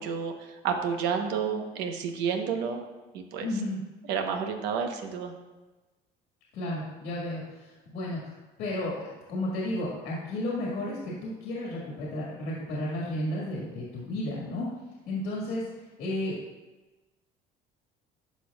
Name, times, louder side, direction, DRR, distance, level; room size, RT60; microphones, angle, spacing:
voice 1, 0.0-2.8 3.1-3.5 4.1-5.3, right 6 dB, 80° right, 5 dB, 1.0 m, -30 dB
voice 2, 3.4-3.8 6.5-14.7 15.1-15.6 16.0-16.4, left 1 dB, 80° left, -4 dB, 1.8 m, -33 dB
12.5 x 4.5 x 2.4 m, 1.2 s
supercardioid pair, 95°, 17 cm